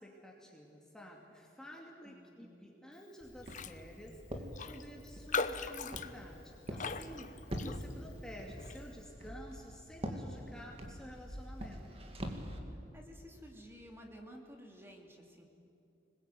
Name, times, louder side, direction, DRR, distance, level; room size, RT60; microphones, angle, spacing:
voice 1, 0.0-12.0, equal, 5° left, -1 dB, 2.5 m, -51 dB
voice 2, 2.0-2.5 12.9-15.4, equal, 15° right, 1 dB, 2.8 m, -53 dB
Walk footsteps, 3.2-12.6, equal, 35° right, 2.4 m, -45 dB
Raindrop, 3.5-3.8 4.1-4.2 4.5-8.1 8.6-8.8, left 5 dB, 45° left, 0.9 m, -39 dB
25.5 x 21.0 x 9.3 m, 2.7 s
head